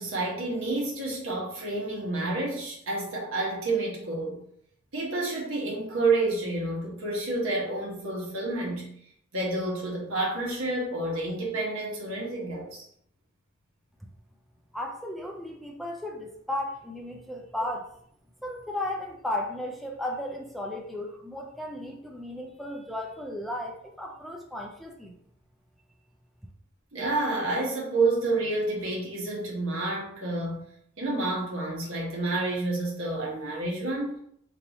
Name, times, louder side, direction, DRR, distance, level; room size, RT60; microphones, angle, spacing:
voice 1, 0.0-4.4 4.9-8.9 9.3-12.8 26.9-30.6 31.0-34.2, right 2 dB, 75° right, -3 dB, 1.3 m, -29 dB
voice 2, 14.7-17.9 18.4-25.1, left 1 dB, ahead, 1 dB, 0.3 m, -35 dB
3.0 x 2.7 x 4.0 m, 0.66 s
head